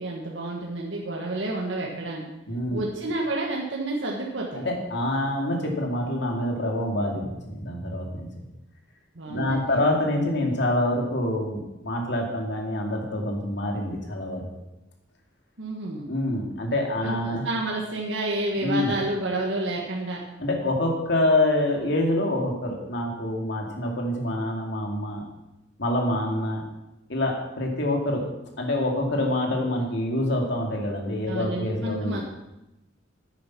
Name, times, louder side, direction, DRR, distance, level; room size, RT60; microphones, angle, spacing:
voice 1, 0.0-2.2 2.7-4.6 9.1-9.8 15.6-16.0 17.0-20.2 31.3-32.2, right 2 dB, 75° right, -2 dB, 1.6 m, -30 dB
voice 2, 2.5-2.8 4.5-8.4 9.3-14.4 16.1-17.4 18.6-18.9 20.4-25.2 25.8-26.6 27.1-28.2 28.6-32.2, left 1 dB, 65° left, 1 dB, 2.5 m, -26 dB
10.5 x 9.0 x 5.9 m, 0.94 s
head